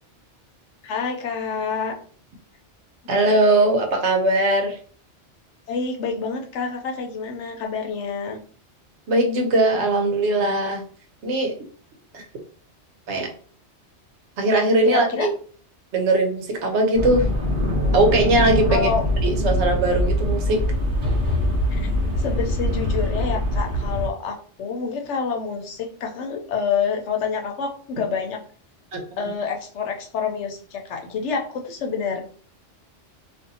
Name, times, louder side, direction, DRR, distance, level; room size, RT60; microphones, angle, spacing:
voice 1, 0.8-2.0 5.7-8.4 14.8-15.3 18.7-19.1 21.7-21.8 22.2-28.4 29.2-32.2, left 5 dB, 80° left, 3 dB, 1.0 m, -27 dB
voice 2, 3.1-4.8 9.1-10.8 11.2-11.6 12.1-12.2 13.1-13.3 14.4-15.3 15.9-17.3 17.9-18.9 19.2-20.6 28.9-29.0, right 2 dB, 75° right, 4 dB, 1.0 m, -20 dB
sound 1, 16.9-24.1, left 1 dB, 45° right, 1.0 m, -23 dB
2.5 x 2.5 x 2.6 m, 0.43 s
omnidirectional pair, 1.2 m